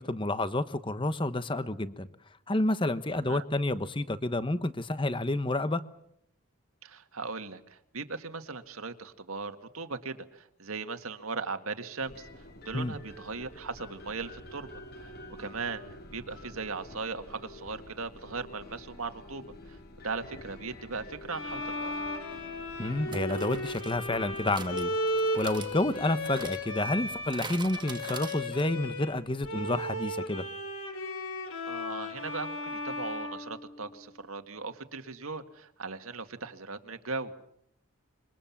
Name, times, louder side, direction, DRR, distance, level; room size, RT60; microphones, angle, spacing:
voice 1, 0.0-2.1 2.5-5.8 12.7-12.9 22.8-24.9 25.4-30.4, left 2 dB, 25° left, 13 dB, 1.1 m, -29 dB
voice 2, 6.8-14.7 15.0-15.1 15.4-15.8 16.1-21.9 31.7-37.5, right 4 dB, 85° right, 7 dB, 2.0 m, -38 dB
sound 1, 12.0-28.5, left 2 dB, 50° left, 2.8 m, -49 dB
Bowed string instrument, 21.3-29.2 29.4-34.2, left 1 dB, 85° left, 5.0 m, -35 dB
sound 2, 21.8-22.0 23.1-28.9 29.1-29.2 29.4-29.5, right 4 dB, 20° right, 1.4 m, -45 dB
26.0 x 23.5 x 7.3 m, 0.75 s
head